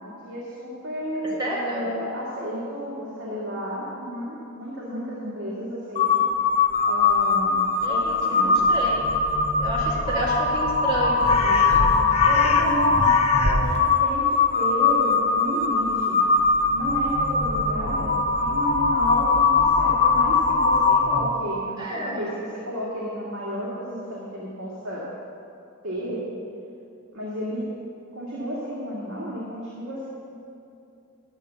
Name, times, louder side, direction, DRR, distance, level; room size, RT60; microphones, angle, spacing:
voice 1, 0.0-6.2 6.8-7.6 7.9-8.5 9.9-10.1 12.2-16.2 16.7-25.1 25.8-26.3 27.1-27.7 28.1-30.1, equal, 75° right, -7 dB, 2.0 m, -32 dB
voice 2, 1.4-1.8 7.8-9.0 9.6-11.7 12.0-12.1 21.8-22.2, right 1 dB, 20° right, -6 dB, 2.2 m, -30 dB
Crow, 6.0-21.5, left 4 dB, 30° left, 0.8 m, -21 dB
12.5 x 6.8 x 7.0 m, 2.7 s
head